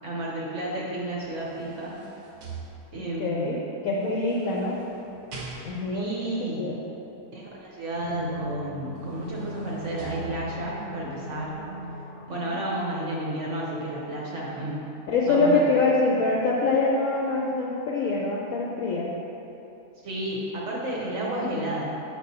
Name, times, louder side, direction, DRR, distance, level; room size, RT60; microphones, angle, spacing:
voice 1, 0.0-2.0 2.9-3.5 5.9-6.7 7.3-11.5 12.3-14.8 15.3-15.6 20.0-22.0, right 1 dB, 55° right, -5 dB, 1.0 m, -32 dB
sound 1, 1.0-3.3 4.1-6.1 8.3-8.4 8.8-10.8 11.4-11.5, right 3 dB, 85° right, 1.4 m, -43 dB
voice 2, 3.0-3.6 3.8-4.8 5.6-6.2 6.6-6.8 8.0-8.4 12.5-12.6 15.1-19.1 21.4-21.6, left 3 dB, 70° left, -3 dB, 0.9 m, -25 dB
sound 2, 7.9-13.6 13.8-13.9, left 1 dB, 85° left, 1.2 m, -39 dB
6.6 x 5.3 x 2.7 m, 2.9 s
omnidirectional pair, 1.7 m